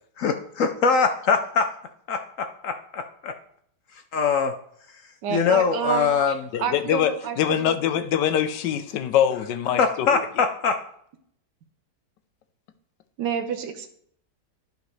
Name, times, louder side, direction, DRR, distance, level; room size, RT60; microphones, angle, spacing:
voice 1, 0.2-1.7 2.1-3.3 4.1-4.6 5.3-6.3 9.8-10.8, left 5 dB, 70° left, 6 dB, 0.8 m, -22 dB
voice 2, 5.2-6.1 6.6-7.7 13.2-13.9, right 7 dB, 80° right, 7 dB, 1.5 m, -29 dB
voice 3, 6.5-10.2, left 9 dB, 85° left, 10 dB, 1.3 m, -24 dB
12.0 x 5.2 x 3.2 m, 0.66 s
omnidirectional pair, 1.8 m